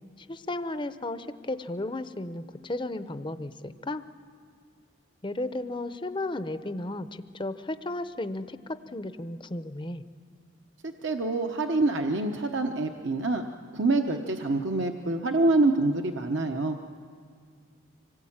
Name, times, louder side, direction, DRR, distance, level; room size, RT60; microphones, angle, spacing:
voice 1, 0.2-4.0 5.2-10.0, left 2 dB, 25° left, 11 dB, 0.7 m, -34 dB
voice 2, 10.8-13.5 13.7-16.8, right 2 dB, 60° right, 4 dB, 1.0 m, -26 dB
25.5 x 19.0 x 8.8 m, 2.1 s
head